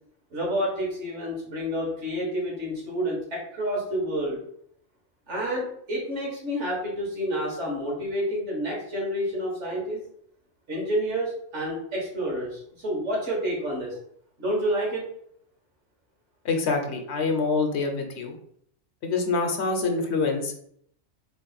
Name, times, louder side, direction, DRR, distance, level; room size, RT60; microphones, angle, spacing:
voice 1, 0.3-4.4 5.3-10.0 10.7-14.0 14.4-15.0, equal, 70° right, -3 dB, 1.7 m, -29 dB
voice 2, 16.4-18.3 19.0-20.6, left 4 dB, 65° left, 4 dB, 0.9 m, -26 dB
3.5 x 2.5 x 4.0 m, 0.67 s
omnidirectional pair, 1.2 m